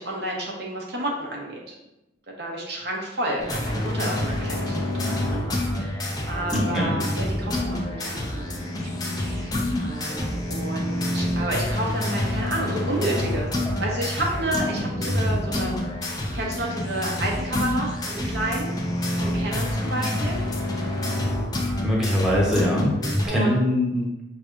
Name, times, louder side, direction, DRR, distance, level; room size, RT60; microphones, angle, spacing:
voice 1, 0.0-1.8 2.4-8.7 9.2-13.5 13.8-18.7 19.2-20.4 23.2-23.6, right 1 dB, 65° right, -2 dB, 1.0 m, -31 dB
sound 1, 3.4-23.3, left 1 dB, 20° left, 0.5 m, -27 dB
voice 2, 6.5-6.9 21.8-22.9 23.3-24.1, equal, 5° right, -5 dB, 0.8 m, -22 dB
5.7 x 3.3 x 2.5 m, 0.94 s
head